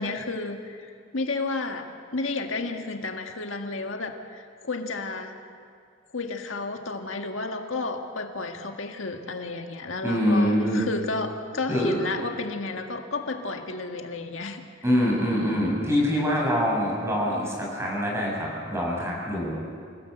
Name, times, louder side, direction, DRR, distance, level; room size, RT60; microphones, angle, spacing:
voice 1, 0.0-5.4 6.1-14.7, left 3 dB, 80° left, 4 dB, 1.7 m, -32 dB
voice 2, 10.0-10.8 11.7-12.0 14.8-19.6, equal, 15° right, -3 dB, 7.0 m, -24 dB
27.5 x 17.0 x 8.0 m, 2.3 s
head